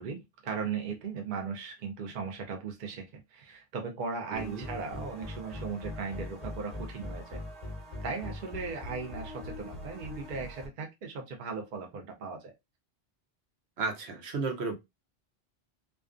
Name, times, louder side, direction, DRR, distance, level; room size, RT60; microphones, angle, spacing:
voice 1, 0.0-7.4 8.0-12.5, right 5 dB, 55° right, 0.7 m, -37 dB
sound 1, 4.3-10.7, left 1 dB, 40° right, 1.2 m, -41 dB
voice 2, 13.8-14.7, right 4 dB, 85° right, 0.9 m, -33 dB
2.3 x 2.2 x 2.4 m
omnidirectional pair, 1.0 m